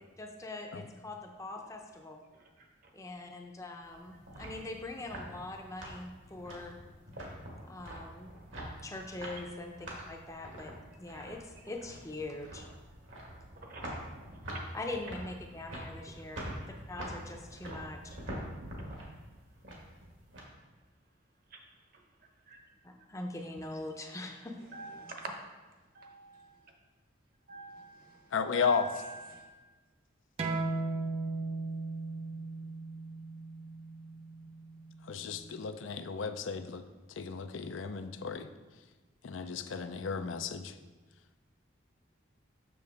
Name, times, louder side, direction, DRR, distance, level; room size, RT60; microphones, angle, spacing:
voice 1, 0.0-2.2 2.9-6.8 7.6-8.3 8.8-10.7 11.0-12.7 14.7-18.2 22.8-24.6, left 2 dB, 15° left, 3 dB, 0.6 m, -42 dB
sound 1, 3.8-20.4, equal, 75° right, 1.7 m, -45 dB
voice 2, 24.7-25.3 25.9-26.5 27.5-28.2 28.6-29.5, right 2 dB, 45° right, 2 dB, 1.0 m, -44 dB
voice 3, 28.3-28.9 35.0-36.8 37.1-38.5 39.2-40.8, left 5 dB, 80° left, 9 dB, 0.5 m, -34 dB
sound 2, 30.4-35.6, right 3 dB, 30° right, 0.6 m, -37 dB
6.8 x 6.5 x 3.5 m, 1.3 s
head